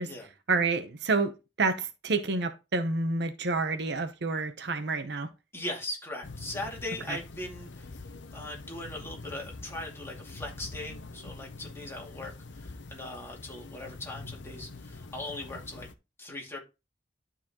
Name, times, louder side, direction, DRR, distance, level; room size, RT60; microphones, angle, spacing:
voice 1, 0.5-5.3 7.1-7.2, right 3 dB, 65° right, 0.8 m, -29 dB
voice 2, 5.5-8.0 8.3-15.9 16.2-16.6, left 2 dB, 15° left, 2.3 m, -39 dB
sound 1, 6.2-15.9, left 3 dB, 85° left, 0.8 m, -45 dB
12.0 x 4.1 x 2.9 m
head